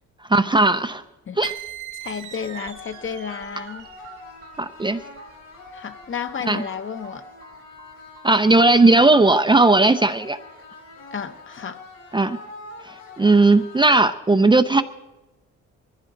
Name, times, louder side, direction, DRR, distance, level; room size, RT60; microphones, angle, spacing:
voice 1, 0.3-1.0 1.4-1.5 4.6-5.0 6.5-6.6 8.2-10.4 12.1-12.4 12.9-14.8, right 2 dB, 15° right, 0.6 m, -17 dB
sound 1, 1.4-8.7, right 11 dB, 75° right, 1.7 m, -41 dB
voice 2, 2.0-3.9 5.7-7.2 11.1-11.8, left 6 dB, 40° left, 1.0 m, -32 dB
sound 2, 2.3-14.3, left 3 dB, 80° left, 6.5 m, -43 dB
22.0 x 14.5 x 3.9 m
cardioid pair, 90°, 30 cm